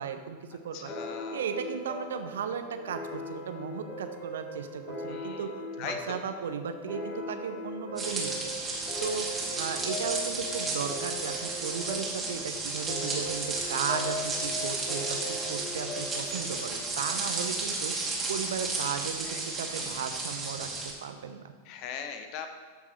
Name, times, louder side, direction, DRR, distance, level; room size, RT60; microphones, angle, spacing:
voice 1, 0.0-0.9 1.3-5.5 5.8-8.3 9.0-9.3 9.6-20.7 21.0-21.5, right 7 dB, 60° right, 7 dB, 0.9 m, -36 dB
voice 2, 0.7-1.5 5.1-5.5 5.8-6.2 19.3-19.4 19.7-20.0 21.6-22.5, left 7 dB, 40° left, 7 dB, 1.1 m, -40 dB
sound 1, 0.9-18.0, left 1 dB, 25° left, 2.1 m, -40 dB
sound 2, 8.0-20.9, right 3 dB, 15° right, 2.3 m, -33 dB
13.5 x 5.9 x 4.7 m, 1.4 s
figure-of-eight pair, 90°, 0 cm